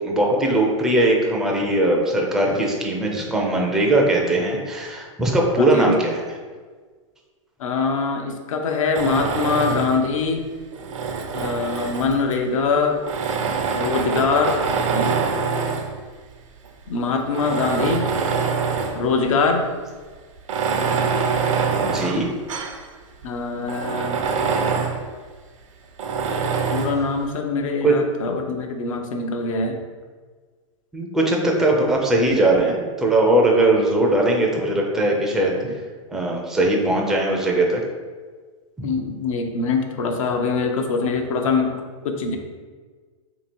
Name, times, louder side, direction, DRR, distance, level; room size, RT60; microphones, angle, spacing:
voice 1, 0.0-6.2 21.8-22.3 27.8-27.9 30.9-35.8 36.1-37.8 38.8-38.9, right 1 dB, ahead, -1 dB, 0.4 m, -20 dB
voice 2, 5.6-6.0 7.6-10.4 11.3-13.0 13.7-14.6 14.9-15.2 16.9-18.1 18.9-19.7 23.2-24.2 26.7-29.8 38.8-41.8 42.0-42.4, left 4 dB, 75° left, 4 dB, 0.6 m, -23 dB
Tools, 8.9-10.1 10.7-12.3 13.0-15.9 16.6-16.7 17.3-19.1 19.4-19.5 20.4-22.8 23.2-23.3 23.6-25.0 26.0-27.0, right 5 dB, 70° right, 0.6 m, -24 dB
2.9 x 2.8 x 4.3 m, 1.5 s
hypercardioid pair, 135°, 17 cm